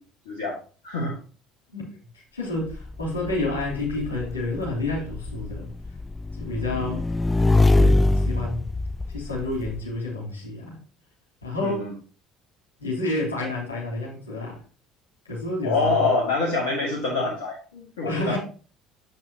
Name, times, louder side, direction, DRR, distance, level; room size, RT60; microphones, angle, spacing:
voice 1, 0.3-0.6 0.8-1.2 11.6-11.9 15.6-17.6 18.0-18.4, left 3 dB, 65° left, 1.7 m, -25 dB
voice 2, 1.7-5.7 6.3-7.1 7.7-8.7 9.1-10.8 11.4-11.9 12.8-14.6 15.2-16.1 17.7-18.4, left 2 dB, 80° left, 3.2 m, -30 dB
Motorcycle / Engine, 2.7-9.8, left 2 dB, 15° left, 0.4 m, -24 dB
7.8 x 7.3 x 2.9 m
figure-of-eight pair, 60°, 0 cm